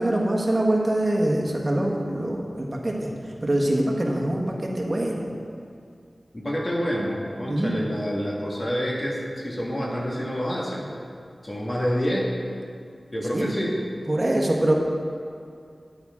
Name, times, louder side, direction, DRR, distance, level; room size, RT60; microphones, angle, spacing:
voice 1, 0.0-3.1 3.4-5.3 7.5-7.7 13.3-13.5 14.1-14.7, right 1 dB, 35° right, -1 dB, 1.4 m, -24 dB
voice 2, 6.3-10.9 11.4-12.3 13.1-13.8, equal, 40° left, -4 dB, 1.7 m, -27 dB
10.0 x 8.8 x 3.7 m, 2.3 s
wide cardioid pair, 75°, 0 cm